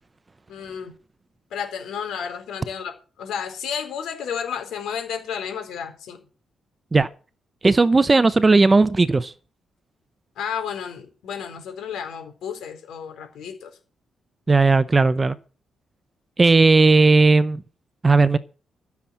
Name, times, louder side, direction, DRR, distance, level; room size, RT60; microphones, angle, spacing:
voice 1, 0.5-1.0 1.5-6.2 10.4-13.8, left 7 dB, 85° left, 4.4 m, -32 dB
voice 2, 7.6-9.3 14.5-15.4 16.4-17.6 18.0-18.4, right 3 dB, 20° right, 0.6 m, -16 dB
15.0 x 7.0 x 7.4 m
cardioid pair, 140°, 0 cm